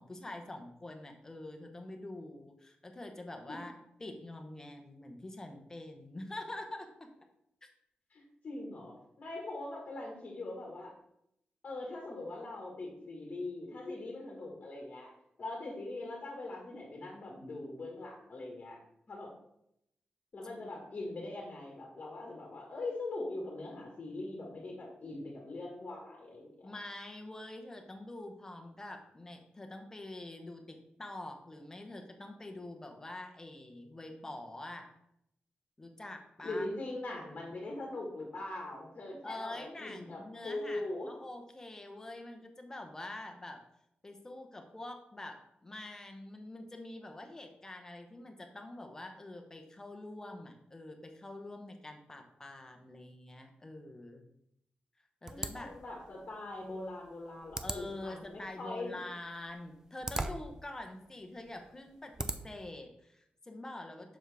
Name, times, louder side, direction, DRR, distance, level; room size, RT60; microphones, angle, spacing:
voice 1, 0.0-7.1 26.6-34.9 35.8-36.7 39.2-43.6 44.0-54.3 55.2-55.7 57.6-64.2, left 2 dB, 15° left, 4 dB, 0.9 m, -46 dB
voice 2, 8.1-10.9 11.6-15.1 15.4-18.8 19.1-19.3 20.3-26.7 36.4-41.1 55.3-59.0, left 2 dB, 40° left, -2 dB, 1.6 m, -41 dB
sound 1, 55.3-62.7, right 2 dB, 15° right, 0.4 m, -43 dB
7.1 x 6.2 x 3.4 m, 0.78 s
wide cardioid pair, 175°, 3 cm